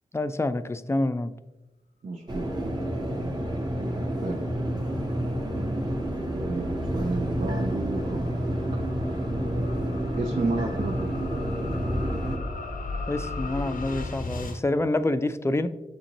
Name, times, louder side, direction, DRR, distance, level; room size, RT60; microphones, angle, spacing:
voice 1, 0.1-1.3 13.1-15.7, left 2 dB, 20° left, 12 dB, 0.3 m, -27 dB
voice 2, 2.0-2.5 4.2-4.4 6.4-6.7 6.9-8.5 10.1-11.2, right 3 dB, 65° right, 1 dB, 0.5 m, -31 dB
sound 1, 2.3-12.4, right 1 dB, 30° right, 0.9 m, -29 dB
sound 2, 6.8-14.6, left 3 dB, 65° left, 0.6 m, -37 dB
7.1 x 2.5 x 2.9 m, 1.0 s
cardioid pair, 40°, 15 cm